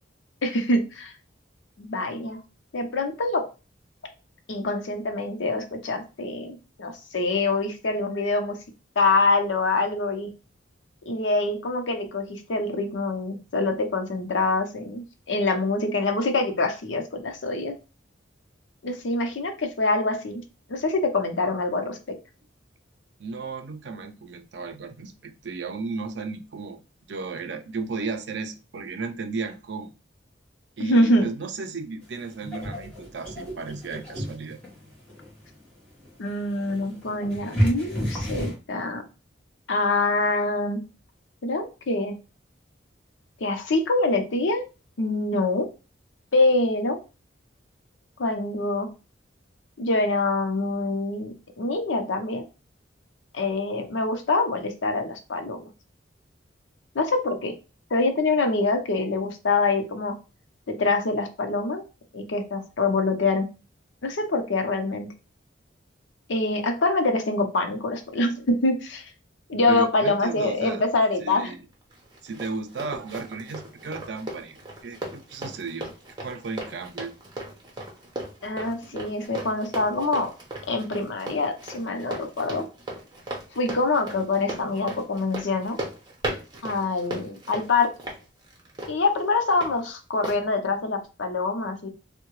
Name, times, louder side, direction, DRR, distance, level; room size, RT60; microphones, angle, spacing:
voice 1, 0.4-1.1 1.8-2.4 2.7-3.4 4.5-8.6 9.0-10.3 11.1-17.7 18.8-20.4 20.7-22.0 30.8-31.3 36.2-39.0 39.7-40.8 41.4-42.2 43.4-44.6 45.0-45.7 46.3-47.0 48.2-48.9 49.8-52.4 53.3-55.6 56.9-57.5 57.9-60.1 60.7-61.8 62.1-63.5 64.0-65.1 66.3-69.1 69.5-71.5 78.4-80.3 80.7-82.6 83.5-85.8 86.6-87.9 88.9-91.9, left 2 dB, 80° left, 6 dB, 0.6 m, -25 dB
voice 2, 23.2-26.8 27.1-29.9 30.8-34.6 69.5-70.8 71.2-71.6 72.2-75.9 76.2-77.1 78.8-79.0, right 4 dB, 65° right, 7 dB, 0.5 m, -34 dB
sound 1, 32.0-38.6, equal, 10° left, 1.1 m, -32 dB
Run, 71.9-89.7 90.2-90.4, right 1 dB, 20° right, 0.8 m, -37 dB
3.6 x 2.2 x 3.0 m, 0.31 s
head